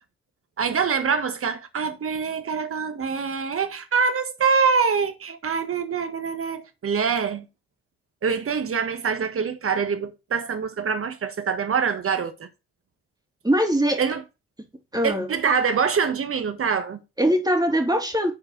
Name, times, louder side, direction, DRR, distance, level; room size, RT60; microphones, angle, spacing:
voice 1, 0.6-7.5 8.2-12.5 14.0-14.2 15.0-17.0, right 6 dB, 50° right, 1.5 m, -25 dB
voice 2, 13.4-14.0 14.9-15.3 17.2-18.3, equal, 15° right, 2.6 m, -21 dB
6.4 x 4.8 x 6.7 m
hypercardioid pair, 45°, 29 cm